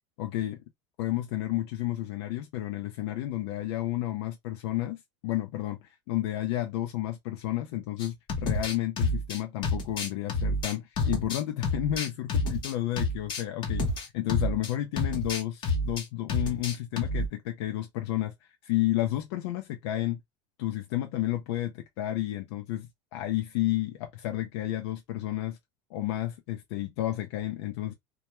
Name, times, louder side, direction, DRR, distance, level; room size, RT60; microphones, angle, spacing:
voice 1, 0.2-0.6 1.0-13.8 14.1-20.2 20.6-25.6 25.9-27.9, left 14 dB, 75° left, 0.4 m, -31 dB
sound 1, 8.0-14.7 15.0-16.0 16.3-17.3, left 2 dB, 35° left, 0.7 m, -29 dB
2.2 x 2.1 x 2.9 m
supercardioid pair, 150°, 14 cm